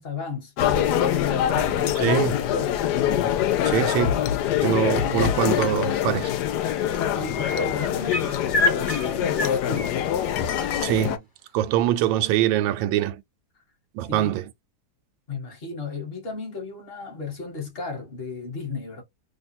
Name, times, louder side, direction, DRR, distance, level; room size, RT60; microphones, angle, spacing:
voice 1, 0.0-2.8 7.1-10.0 14.1-14.3 15.3-19.0, left 4 dB, 35° left, 1.2 m, -34 dB
sound 1, 0.6-11.2, left 10 dB, 70° left, 1.0 m, -24 dB
voice 2, 2.0-2.3 3.6-4.3 4.6-6.3 10.8-11.2 11.5-13.2 13.9-14.4, right 12 dB, 80° right, 1.3 m, -23 dB
sound 2, 6.9-10.7 12.4-12.5, left 2 dB, 15° left, 0.7 m, -29 dB
3.1 x 2.3 x 4.2 m
omnidirectional pair, 2.1 m